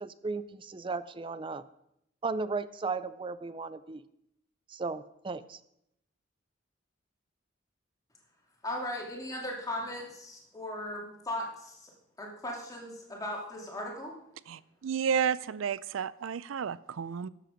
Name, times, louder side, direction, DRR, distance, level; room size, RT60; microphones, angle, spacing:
voice 1, 0.0-1.6 2.2-4.0 4.7-5.6, right 4 dB, 25° right, 15 dB, 0.4 m, -35 dB
voice 2, 8.6-11.9 12.2-14.1, left 1 dB, 20° left, -1 dB, 2.6 m, -37 dB
voice 3, 14.5-17.3, right 7 dB, 90° right, 19 dB, 0.4 m, -31 dB
12.0 x 7.6 x 5.2 m, 0.78 s
head